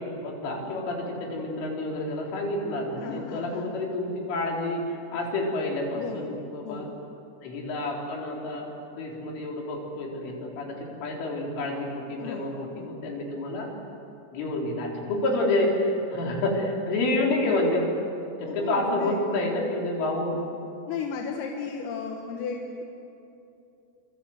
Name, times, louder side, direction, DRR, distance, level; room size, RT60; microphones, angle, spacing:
voice 1, 0.0-6.9 7.4-8.7 9.0-13.7 14.3-17.9 18.4-20.4, left 2 dB, 75° left, -1 dB, 6.6 m, -29 dB
voice 2, 3.0-3.7 5.9-7.0 12.2-12.4 12.7-12.9 18.5-19.2 20.9-22.8, left 5 dB, 90° left, 1 dB, 4.3 m, -35 dB
27.5 x 26.5 x 8.0 m, 2.7 s
omnidirectional pair, 5.7 m